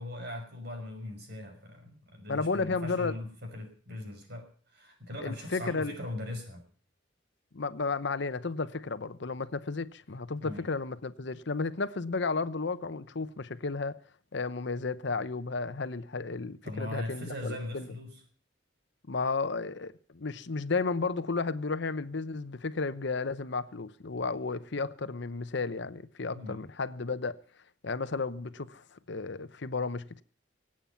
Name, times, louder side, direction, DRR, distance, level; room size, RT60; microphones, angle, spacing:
voice 1, 0.0-6.6 10.4-10.7 16.6-18.2 26.3-26.6, left 1 dB, 60° right, 5.7 m, -40 dB
voice 2, 2.3-3.1 5.2-5.9 7.5-14.0 14.3-17.9 19.1-27.4 27.8-30.2, left 4 dB, 65° left, 0.9 m, -33 dB
25.0 x 8.8 x 5.7 m
head